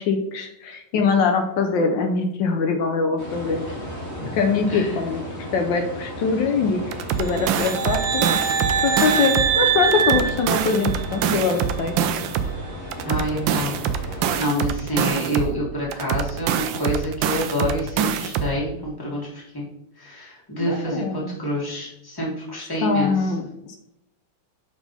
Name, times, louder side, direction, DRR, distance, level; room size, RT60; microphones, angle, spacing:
voice 1, 0.0-3.6 4.3-6.8 7.2-8.3 8.8-12.0 13.1-13.2 20.6-21.3 22.8-23.8, left 4 dB, 75° left, 4 dB, 1.4 m, -23 dB
sound 1, 3.2-14.4, equal, 35° left, 1.6 m, -35 dB
voice 2, 4.7-5.0 13.1-13.7 14.1-19.7 20.0-23.3, equal, 10° left, -5 dB, 1.8 m, -27 dB
sound 2, 6.9-9.6 9.9-12.6 12.9-15.6 15.9-18.6, right 8 dB, 85° right, 1.3 m, -25 dB
sound 3, 7.2-11.3, right 7 dB, 65° right, 1.2 m, -24 dB
6.1 x 5.0 x 4.1 m, 0.83 s
omnidirectional pair, 2.0 m